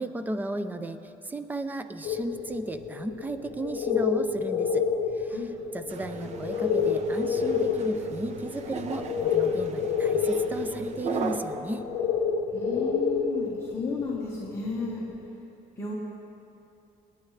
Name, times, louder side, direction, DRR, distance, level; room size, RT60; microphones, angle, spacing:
voice 1, 0.0-4.9 5.1-11.9, right 1 dB, 10° right, 9 dB, 0.5 m, -35 dB
sound 1, 2.0-15.3, left 6 dB, 60° left, 1.2 m, -29 dB
sound 2, 5.9-11.4, right 5 dB, 50° right, 0.8 m, -37 dB
voice 2, 12.5-15.1 15.8-15.9, left 3 dB, 20° left, -6 dB, 1.5 m, -33 dB
28.0 x 9.6 x 3.3 m, 2.8 s
cardioid pair, 160°, 15 cm